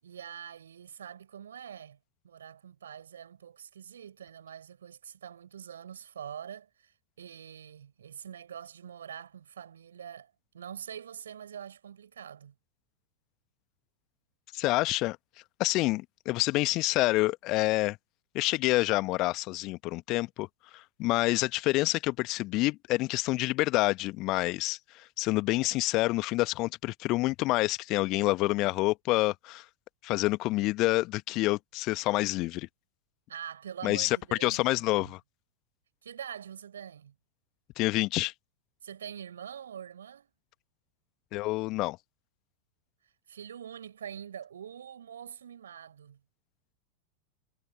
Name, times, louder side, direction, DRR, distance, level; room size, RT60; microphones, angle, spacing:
voice 1, 0.0-2.0 2.2-12.5 33.3-35.1 36.0-37.1 38.8-40.3 43.3-46.2, right 8 dB, 65° right, 7.0 m, -44 dB
voice 2, 14.5-15.2 15.6-18.0 18.3-20.5 20.7-29.6 30.0-32.7 33.8-35.2 37.8-38.3 41.3-42.0, left 20 dB, 40° left, 1.4 m, -28 dB
figure-of-eight pair, 90°, 0 cm